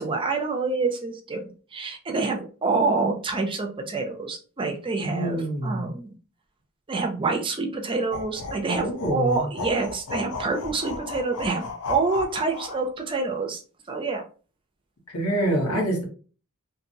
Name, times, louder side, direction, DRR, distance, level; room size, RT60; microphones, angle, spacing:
voice 1, 0.0-6.2 6.9-11.6 11.9-13.6 13.9-14.2, right 3 dB, 25° right, 4 dB, 0.4 m, -27 dB
voice 2, 5.0-5.9 8.8-9.5 15.1-16.0, right 1 dB, 70° left, -3 dB, 1.4 m, -26 dB
sound 1, 8.1-12.9, left 3 dB, 90° left, 0.6 m, -35 dB
2.8 x 2.6 x 2.6 m, 0.38 s
head